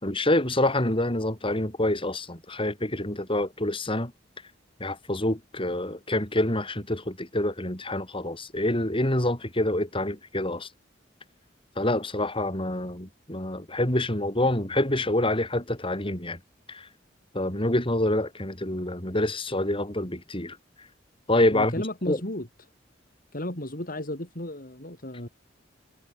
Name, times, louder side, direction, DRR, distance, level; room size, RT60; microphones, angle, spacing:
voice 1, 0.0-4.1 4.8-10.7 11.8-16.4 16.7-16.9 17.3-20.6 21.3-21.7 22.1-22.2, left 1 dB, 30° left, 6.9 m, -26 dB
voice 2, 21.5-22.5 23.3-25.3, left 1 dB, 50° left, 5.2 m, -33 dB
head